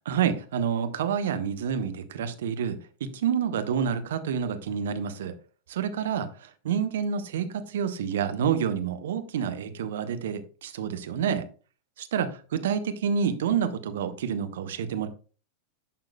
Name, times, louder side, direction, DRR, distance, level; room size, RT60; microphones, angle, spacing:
voice 1, 0.1-5.3 5.7-11.5 12.0-15.1, right 7 dB, 60° right, 0.9 m, -28 dB
11.0 x 5.8 x 2.2 m
figure-of-eight pair, 90°, 0 cm